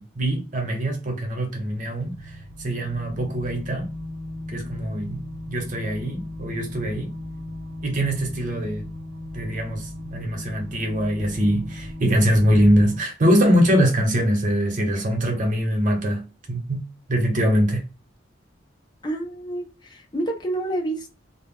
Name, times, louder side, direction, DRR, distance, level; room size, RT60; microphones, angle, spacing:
voice 1, 0.0-3.9 4.5-5.2 5.5-7.1 7.8-8.8 9.3-16.2 16.5-16.8 17.1-17.8, equal, 45° right, 0.8 m, -23 dB
sound 1, 1.7-13.0, left 1 dB, 75° right, 0.7 m, -36 dB
voice 2, 19.0-21.1, right 1 dB, 25° left, 0.5 m, -28 dB
2.2 x 2.0 x 3.5 m
head